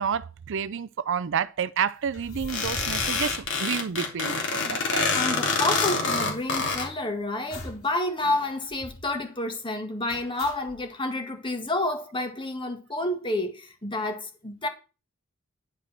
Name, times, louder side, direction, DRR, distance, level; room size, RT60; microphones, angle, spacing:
voice 1, 0.0-5.1, right 7 dB, 60° right, 0.5 m, -30 dB
sound 1, 2.1-4.3 4.6-4.7 4.9-7.0 7.5-7.9 8.2-8.3 8.7-9.2 10.1-10.8, left 1 dB, 90° left, 2.8 m, -42 dB
sound 2, 2.5-6.9, left 4 dB, 60° left, 2.7 m, -26 dB
voice 2, 5.1-14.7, left 2 dB, 25° left, 1.8 m, -29 dB
10.0 x 5.2 x 5.7 m
head